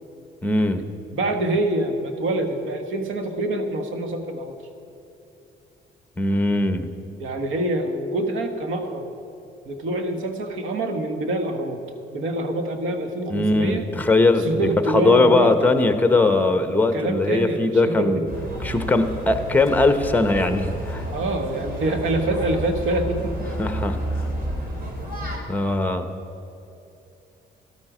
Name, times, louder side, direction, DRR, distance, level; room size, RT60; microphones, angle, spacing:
voice 1, 0.4-0.8 6.2-6.9 13.3-18.2 18.6-21.0 23.6-24.0 25.5-26.1, left 2 dB, 10° left, 8 dB, 1.0 m, -20 dB
voice 2, 1.1-4.5 7.2-9.1 9.7-11.8 12.1-13.8 14.4-15.7 16.9-18.4 21.1-23.5, right 1 dB, 80° right, 6 dB, 1.4 m, -26 dB
sound 1, 18.3-25.4, right 1 dB, 45° right, 3.2 m, -30 dB
13.5 x 12.0 x 5.0 m, 2.9 s
cardioid pair, 90°, 20 cm